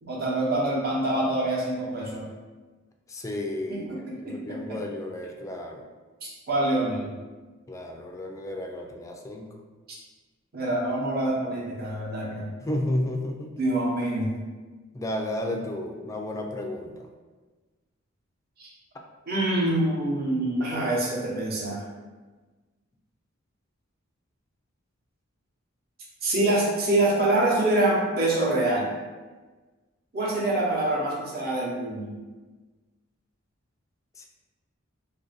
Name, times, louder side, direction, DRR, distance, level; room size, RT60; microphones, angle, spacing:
voice 1, 0.0-2.2 3.7-4.8 6.2-7.1 10.5-12.5 13.6-14.3 18.6-18.7 19.3-21.8 26.2-28.9 30.1-32.1, right 1 dB, 50° right, -4 dB, 0.9 m, -25 dB
voice 2, 3.1-5.8 7.7-9.5 12.6-13.5 14.9-17.1 34.2-34.3, left 1 dB, 15° left, 2 dB, 0.3 m, -32 dB
3.3 x 2.6 x 3.9 m, 1.3 s
head